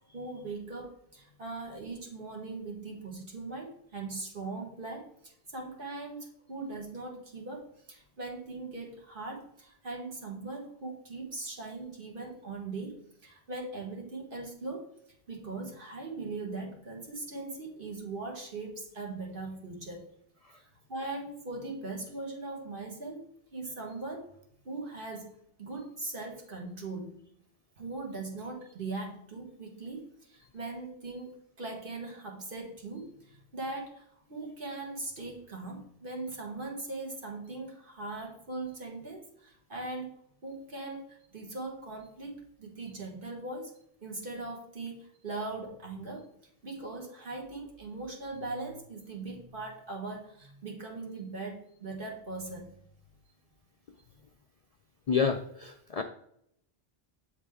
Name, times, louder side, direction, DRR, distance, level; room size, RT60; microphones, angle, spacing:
voice 1, 0.1-14.9 15.3-20.0 20.9-23.2 23.5-24.2 24.7-25.3 25.6-27.2 27.8-40.1 40.4-43.7 44.0-46.3 46.6-52.7, right 3 dB, 60° right, -1 dB, 1.8 m, -40 dB
voice 2, 55.1-56.0, left 6 dB, 55° left, 5 dB, 0.4 m, -28 dB
7.8 x 3.9 x 3.5 m, 0.70 s
omnidirectional pair, 1.0 m